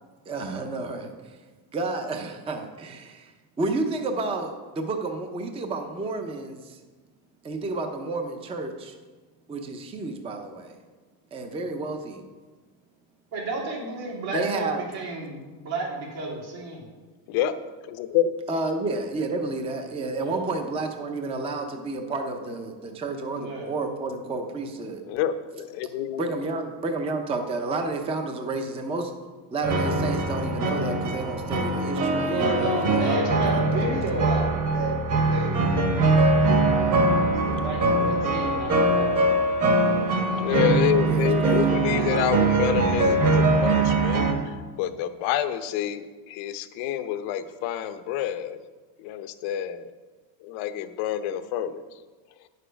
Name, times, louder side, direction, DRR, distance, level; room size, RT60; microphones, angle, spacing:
voice 1, 0.3-1.4 1.7-3.3 3.6-6.8 7.4-8.9 9.5-10.8 11.3-12.2 14.3-14.8 18.5-25.0 26.2-29.1 29.5-33.2 33.4-34.0 41.1-41.9, right 3 dB, 15° right, 5 dB, 0.5 m, -31 dB
voice 2, 13.3-16.9 20.1-20.5 23.3-23.7 32.3-35.0 35.3-36.1 37.3-39.1 39.6-40.1, right 2 dB, 75° right, -3 dB, 3.2 m, -32 dB
voice 3, 17.9-18.3 25.1-26.3 40.4-48.6 49.0-49.9 50.4-51.8, left 10 dB, 80° left, 9 dB, 0.8 m, -28 dB
sound 1, 29.6-44.3, right 2 dB, 40° right, 1.3 m, -22 dB
9.3 x 6.7 x 5.1 m, 1.3 s
cardioid pair, 155°, 48 cm